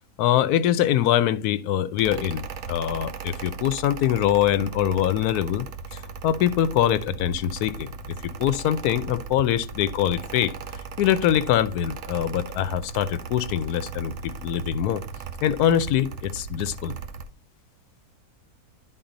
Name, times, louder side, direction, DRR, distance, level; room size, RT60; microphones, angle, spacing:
voice 1, 0.2-5.7 5.9-7.9 8.4-10.5 11.0-15.0 15.4-16.9, left 11 dB, 85° left, 1.1 m, -23 dB
Mechanical fan, 2.0-17.3, right 5 dB, 75° right, 1.3 m, -38 dB
10.5 x 4.1 x 3.9 m
omnidirectional pair, 1.6 m